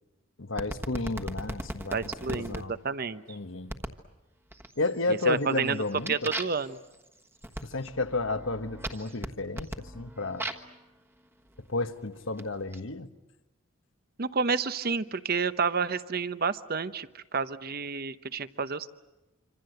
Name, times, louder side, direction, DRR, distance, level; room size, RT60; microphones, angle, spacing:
voice 1, 0.4-2.0 2.3-2.7 3.3-3.7 4.8-6.1 7.6-10.5 11.7-13.1, left 2 dB, 70° left, 10 dB, 1.2 m, -32 dB
sound 1, 0.6-2.6 3.7-4.0 4.5-5.0 5.4-10.8 11.6-12.8, right 1 dB, 10° right, 1.4 m, -38 dB
voice 2, 1.9-3.4 5.1-5.8 6.1-6.8 14.2-18.9, right 5 dB, 50° right, 13 dB, 0.9 m, -30 dB
26.5 x 26.0 x 8.0 m, 1.0 s
head